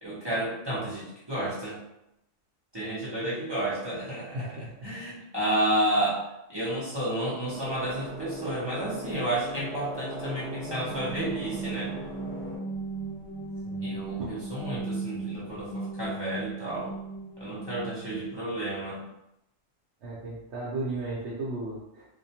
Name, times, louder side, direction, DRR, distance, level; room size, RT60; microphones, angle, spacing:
voice 1, 0.0-1.8 2.7-4.5 4.8-12.0 13.8-16.9 17.4-19.0, right 1 dB, 40° right, -9 dB, 0.3 m, -31 dB
voice 2, 4.3-4.9 13.6-14.3 20.0-22.1, right 2 dB, 65° right, -6 dB, 0.8 m, -35 dB
sound 1, 7.4-12.6, equal, 10° left, 0.8 m, -39 dB
sound 2, 10.6-18.4, right 3 dB, 65° left, 0.7 m, -37 dB
2.3 x 2.1 x 2.7 m, 0.84 s
omnidirectional pair, 1.3 m